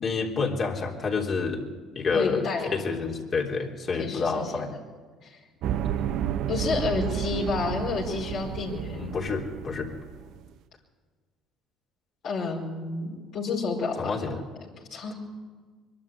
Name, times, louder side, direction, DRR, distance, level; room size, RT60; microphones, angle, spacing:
voice 1, 0.0-1.6 2.0-4.7 8.9-9.9 14.0-14.4, left 4 dB, 45° left, 0 dB, 3.6 m, -28 dB
voice 2, 2.1-2.7 4.0-4.5 5.2-5.4 6.5-9.1 12.2-14.1 14.9-15.1, left 4 dB, 60° left, -4 dB, 4.7 m, -30 dB
sound 1, 5.6-10.4, right 10 dB, 65° right, 0.8 m, -31 dB
22.5 x 12.5 x 9.6 m, 1.5 s
supercardioid pair, 85°, 0 cm